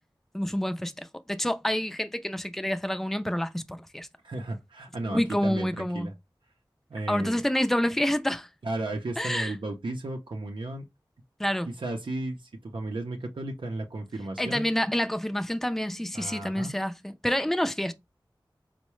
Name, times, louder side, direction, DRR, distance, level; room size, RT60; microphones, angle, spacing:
voice 1, 0.3-4.1 5.1-6.1 7.1-8.5 9.2-9.5 11.4-11.7 14.4-17.9, left 1 dB, 5° left, 0.4 m, -28 dB
voice 2, 4.2-6.1 6.9-7.4 8.6-10.8 11.8-14.7 16.1-16.8, right 2 dB, 85° right, 0.5 m, -34 dB
4.5 x 2.1 x 3.0 m
wide cardioid pair, 60°, 8 cm